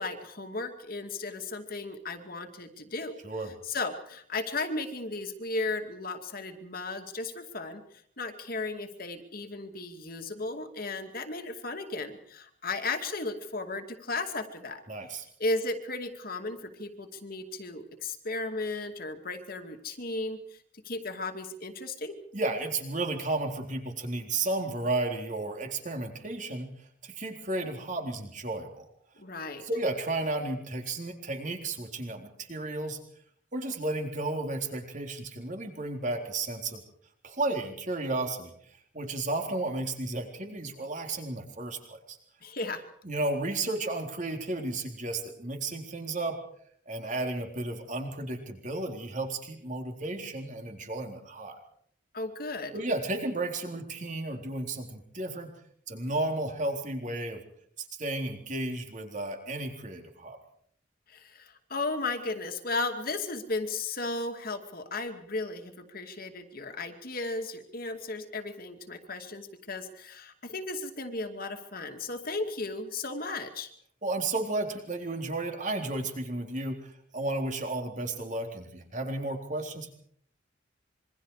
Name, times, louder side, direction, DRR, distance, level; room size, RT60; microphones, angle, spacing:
voice 1, 0.0-3.1 3.6-7.8 8.2-14.8 15.4-20.6 20.8-22.2 29.2-29.7 42.4-42.8 52.1-52.7 61.1-73.7, left 3 dB, 45° left, 6 dB, 2.4 m, -35 dB
voice 2, 14.9-15.3 22.3-26.7 27.0-28.8 29.6-33.0 33.5-36.8 37.2-38.5 38.9-42.2 43.0-46.4 46.9-51.6 52.7-55.5 55.9-57.4 57.8-60.4 74.0-80.0, right 2 dB, 40° right, 4 dB, 3.9 m, -33 dB
27.0 x 23.5 x 4.9 m, 0.63 s
head